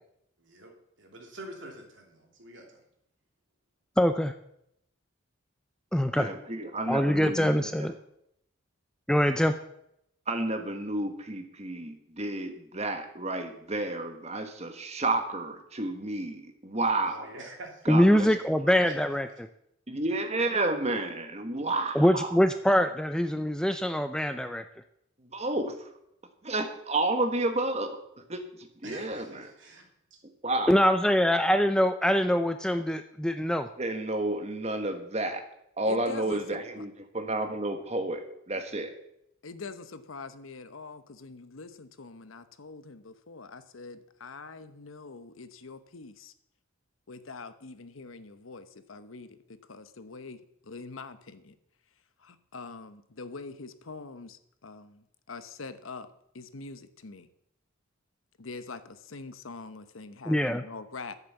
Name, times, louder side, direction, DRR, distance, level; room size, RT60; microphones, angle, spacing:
voice 1, 0.4-0.7 1.0-2.8 17.1-17.9 18.8-18.9 28.8-29.8, right 1 dB, 65° right, 1 dB, 2.9 m, -46 dB
voice 2, 4.0-4.3 5.9-6.3 6.9-7.9 9.1-9.6 17.9-19.3 21.9-24.6 30.7-33.7 60.3-60.6, equal, 5° left, 8 dB, 0.4 m, -24 dB
voice 3, 6.1-7.9 10.3-17.3 17.8-18.3 19.9-22.4 25.2-25.9 26.4-29.5 30.4-30.7 33.8-35.4 35.8-38.9, right 2 dB, 30° right, 5 dB, 1.5 m, -31 dB
voice 4, 35.9-36.8 39.4-46.3 47.1-51.5 52.2-56.1 56.3-57.3 58.4-61.2, left 4 dB, 80° left, 11 dB, 0.9 m, -44 dB
11.0 x 8.2 x 7.0 m, 0.76 s
head